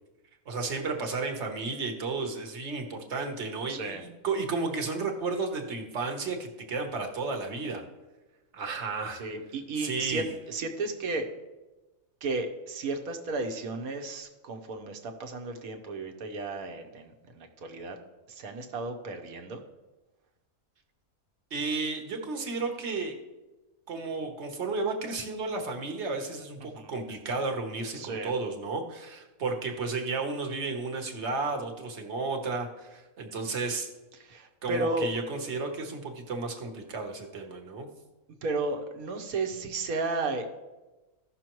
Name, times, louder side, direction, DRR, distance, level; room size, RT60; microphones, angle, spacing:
voice 1, 0.5-7.8 8.5-9.2 9.8-10.3 21.5-23.1 23.9-33.9 34.6-37.9, right 3 dB, 50° right, 4 dB, 1.4 m, -33 dB
voice 2, 3.7-4.0 9.1-11.3 12.2-18.0 18.3-19.6 26.7-26.9 27.9-28.3 34.2-35.1 38.4-40.4, right 3 dB, 75° right, 5 dB, 1.4 m, -33 dB
15.5 x 6.1 x 3.0 m, 1.1 s
omnidirectional pair, 1.5 m